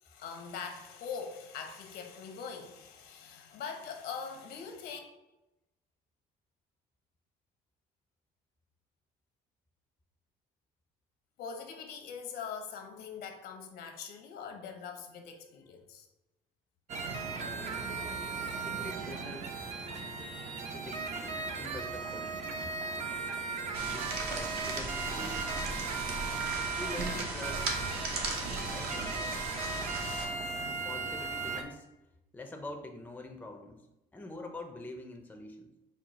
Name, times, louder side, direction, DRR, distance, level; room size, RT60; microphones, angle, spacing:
voice 1, 0.0-5.0 11.4-16.1, left 6 dB, 75° left, 4 dB, 0.9 m, -42 dB
sound 1, 16.9-31.6, right 4 dB, 45° right, 0.6 m, -37 dB
voice 2, 18.5-19.7 20.5-22.4 23.7-25.5 26.7-27.7 28.7-29.2 30.8-31.9 32.3-33.9 34.1-35.7, left 2 dB, 10° left, 4 dB, 0.5 m, -45 dB
sound 2, 23.7-30.3, right 3 dB, 70° right, 1.0 m, -37 dB
4.5 x 2.3 x 4.8 m, 0.97 s
cardioid pair, 110°, 17 cm